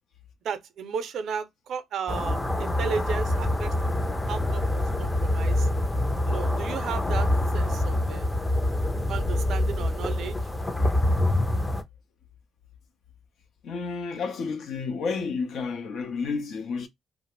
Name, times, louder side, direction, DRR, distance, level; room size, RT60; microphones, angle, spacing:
voice 1, 0.4-3.7 4.3-5.7 6.3-7.3 7.5-8.3 9.1-10.4, right 6 dB, 70° right, 0.5 m, -34 dB
sound 1, 2.1-11.8, left 1 dB, 20° left, 0.5 m, -25 dB
voice 2, 13.6-16.9, left 5 dB, 70° left, 0.6 m, -31 dB
2.4 x 2.0 x 2.9 m
cardioid pair, 90°, 0 cm